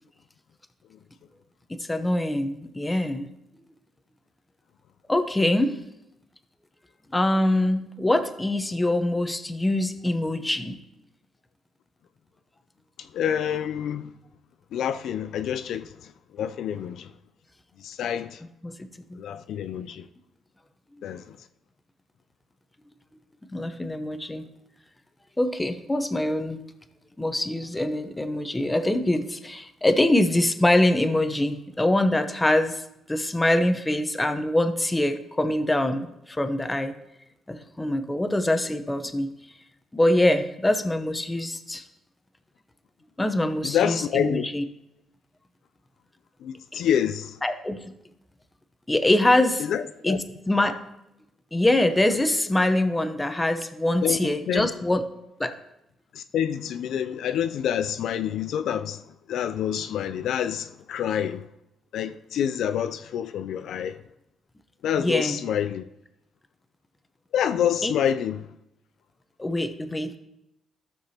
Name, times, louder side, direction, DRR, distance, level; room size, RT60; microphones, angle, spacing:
voice 1, 1.8-3.3 5.1-5.8 7.1-10.8 18.6-19.2 23.5-24.4 25.4-26.6 27.2-32.8 33.1-36.9 37.5-39.3 39.9-41.8 43.2-44.6 46.7-46.8 47.4-47.8 48.9-49.7 50.0-50.7 51.5-55.0 55.4-55.5 65.0-65.4 67.8-67.9 69.4-70.2, left 1 dB, 15° left, 0.8 m, -24 dB
voice 2, 13.0-14.1 14.7-17.1 17.8-18.4 19.2-20.0 21.0-21.4 43.6-44.5 46.4-47.4 49.6-50.2 54.0-54.2 54.5-54.7 56.1-59.0 59.3-61.4 61.9-64.0 64.8-65.8 67.3-68.5, left 9 dB, 75° left, 0.4 m, -27 dB
14.5 x 6.1 x 2.9 m
cardioid pair, 90°, 0 cm